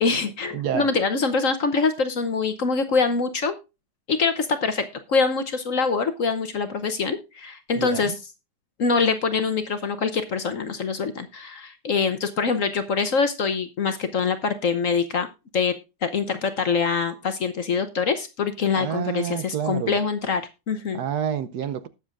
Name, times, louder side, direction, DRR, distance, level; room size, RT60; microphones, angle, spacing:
voice 1, 0.0-3.6 4.1-8.1 8.8-15.3 15.5-15.7 16.0-21.0, left 5 dB, 55° left, 1.0 m, -24 dB
voice 2, 0.5-0.9 7.8-8.2 18.7-20.0 20.9-21.9, right 9 dB, 70° right, 1.2 m, -28 dB
19.5 x 7.1 x 2.5 m
omnidirectional pair, 2.0 m